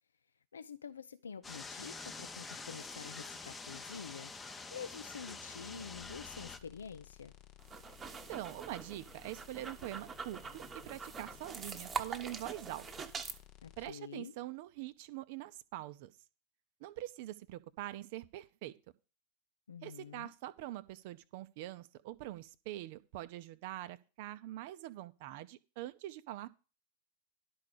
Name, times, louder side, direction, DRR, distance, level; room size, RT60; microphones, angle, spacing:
voice 1, 0.5-7.3 13.6-14.3 19.7-20.3, left 6 dB, 70° left, 0.4 m, -48 dB
sound 1, 1.4-6.6, left 4 dB, 15° left, 0.8 m, -46 dB
sound 2, 5.9-13.9, left 12 dB, 40° left, 1.0 m, -58 dB
sound 3, 7.6-13.4, right 6 dB, 20° right, 1.0 m, -44 dB
voice 2, 8.1-12.9 13.8-16.1 16.8-18.8 19.8-26.5, right 15 dB, 50° right, 0.6 m, -44 dB
11.5 x 4.8 x 6.6 m
figure-of-eight pair, 90°, 0 cm